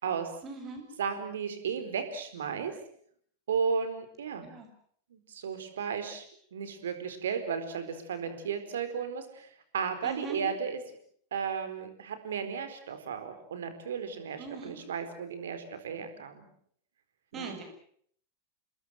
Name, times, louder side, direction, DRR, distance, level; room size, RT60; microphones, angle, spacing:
voice 1, 0.4-0.8 4.3-4.7 10.0-10.4 14.4-14.8 17.3-17.6, right 5 dB, 30° right, 6 dB, 8.0 m, -41 dB
voice 2, 1.0-2.7 3.5-4.5 5.1-6.2 6.5-10.8 11.3-16.5 17.3-17.5, right 6 dB, 65° right, 9 dB, 4.4 m, -34 dB
28.5 x 21.0 x 7.7 m, 0.63 s
figure-of-eight pair, 90°, 0 cm